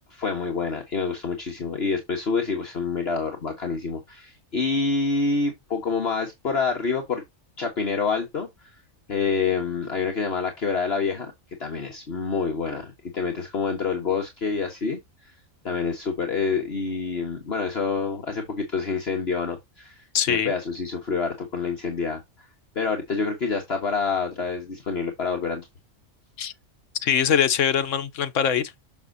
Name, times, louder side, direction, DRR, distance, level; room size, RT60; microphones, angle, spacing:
voice 1, 0.1-7.2 7.6-8.7 9.1-11.3 11.6-15.0 15.6-22.2 22.7-25.7, left 4 dB, 50° left, 1.6 m, -27 dB
voice 2, 20.1-20.5 26.4-26.5 27.0-28.7, left 8 dB, 70° left, 1.2 m, -22 dB
7.0 x 6.4 x 2.7 m
omnidirectional pair, 1.4 m